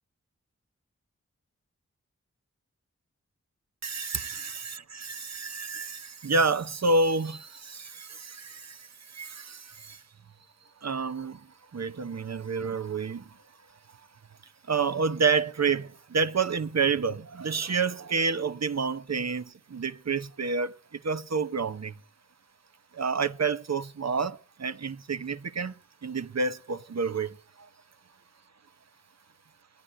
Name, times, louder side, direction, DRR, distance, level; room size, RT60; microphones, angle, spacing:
voice 1, 3.8-10.0 10.8-11.4 11.7-13.2 14.7-22.0 22.9-25.7 26.0-27.4, right 4 dB, 65° right, 0.9 m, -29 dB
14.0 x 10.0 x 8.8 m
wide cardioid pair, 75°, 29 cm